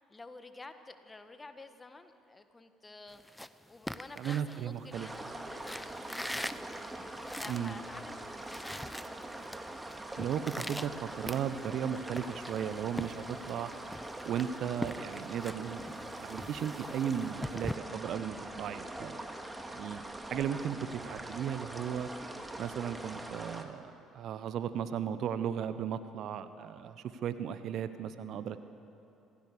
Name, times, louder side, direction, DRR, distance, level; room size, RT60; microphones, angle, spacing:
voice 1, 0.0-3.2 3.7-6.2 7.1-8.9, left 3 dB, 25° left, 9 dB, 1.7 m, -51 dB
sound 1, 3.1-5.2 5.6-7.8 8.1-8.2 8.4-9.6 9.9-11.8 12.2-13.6 13.9-17.7, left 1 dB, 5° left, 0.8 m, -42 dB
voice 2, 4.2-5.1 7.5-7.8 10.2-13.7 14.2-15.9 16.2-19.2 19.7-20.0 20.3-22.1 22.6-28.6, right 8 dB, 55° right, 12 dB, 1.0 m, -36 dB
sound 2, 4.9-23.6, right 1 dB, 15° right, 2.2 m, -43 dB
26.5 x 17.0 x 6.8 m, 2.8 s
figure-of-eight pair, 50°, 0 cm